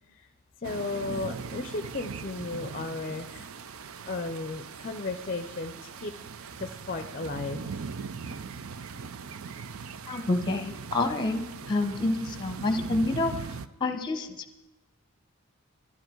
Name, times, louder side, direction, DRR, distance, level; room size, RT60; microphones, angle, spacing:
voice 1, 0.6-3.5 4.0-6.1 6.6-7.8, left 3 dB, 40° left, 9 dB, 0.5 m, -35 dB
sound 1, 0.6-13.7, right 5 dB, 80° right, 0.5 m, -40 dB
voice 2, 10.1-14.4, left 2 dB, 20° left, 8 dB, 1.0 m, -28 dB
12.5 x 11.5 x 4.5 m, 1.0 s
head